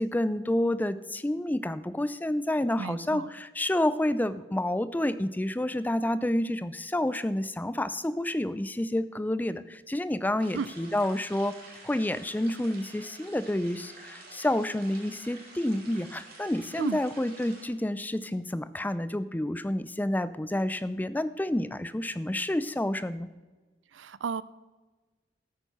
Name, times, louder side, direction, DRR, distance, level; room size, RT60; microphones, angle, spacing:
voice 1, 0.0-11.5 11.8-23.3, left 1 dB, 10° left, 15 dB, 0.4 m, -29 dB
voice 2, 2.8-3.3 10.5-10.7 16.8-17.0 23.9-24.4, right 5 dB, 70° right, 18 dB, 0.5 m, -33 dB
sound 1, 10.4-17.6, right 2 dB, 55° right, 3.1 m, -49 dB
12.5 x 9.2 x 5.5 m, 1.3 s
head